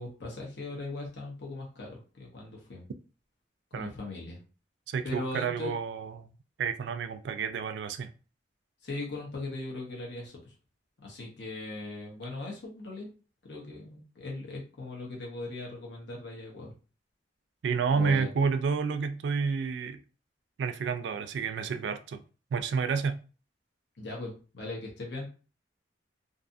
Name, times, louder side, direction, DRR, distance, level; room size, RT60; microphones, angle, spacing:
voice 1, 0.0-2.8 3.7-4.4 5.0-5.7 8.8-10.3 11.0-13.1 13.4-16.7 17.9-18.3 24.0-25.3, left 2 dB, 70° left, 0.8 m, -39 dB
voice 2, 4.9-6.3 6.6-8.1 17.6-20.0 20.6-22.2 22.5-23.2, right 5 dB, 75° right, 0.3 m, -30 dB
2.6 x 2.4 x 2.6 m
head